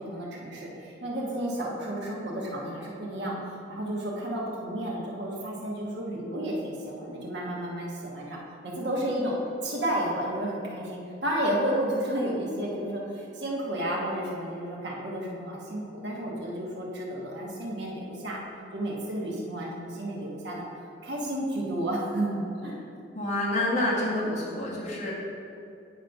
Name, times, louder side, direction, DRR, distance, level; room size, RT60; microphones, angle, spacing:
voice 1, 0.0-8.4 8.6-9.4 9.6-18.4 18.7-20.6 21.0-22.7, right 1 dB, 70° right, -4 dB, 1.2 m, -32 dB
voice 2, 23.1-25.1, left 1 dB, 40° left, -6 dB, 1.5 m, -28 dB
9.2 x 3.1 x 5.2 m, 2.6 s
head